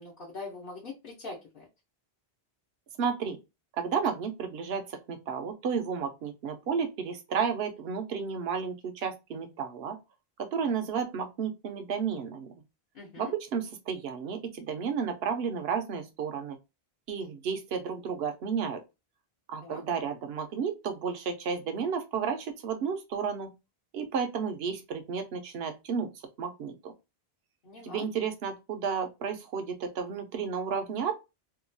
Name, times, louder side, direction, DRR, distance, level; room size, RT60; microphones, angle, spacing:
voice 1, 0.0-1.7 12.9-13.3 19.6-19.8 27.6-28.1, left 3 dB, 60° left, 1.0 m, -42 dB
voice 2, 3.0-3.4 3.8-10.0 10.4-12.5 13.2-16.6 17.1-18.8 19.5-23.5 23.9-26.1 26.4-26.9 27.8-31.1, right 6 dB, 75° right, 0.9 m, -32 dB
2.9 x 2.3 x 2.5 m
omnidirectional pair, 1.1 m